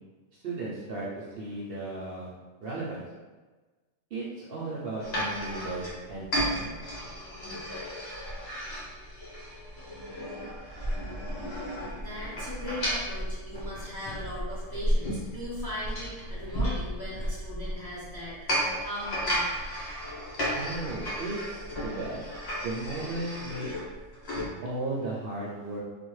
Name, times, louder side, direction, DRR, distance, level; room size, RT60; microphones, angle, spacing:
voice 1, 0.3-2.3 2.6-3.1 4.1-6.3 6.5-6.8 20.5-22.4 22.6-23.7 24.6-25.8, right 2 dB, 60° right, -5 dB, 0.7 m, -35 dB
sound 1, 5.0-24.5, equal, 60° left, 1.3 m, -33 dB
voice 2, 11.9-19.6, left 1 dB, 20° left, -8 dB, 0.7 m, -39 dB
3.2 x 2.1 x 3.1 m, 1.3 s
omnidirectional pair, 1.3 m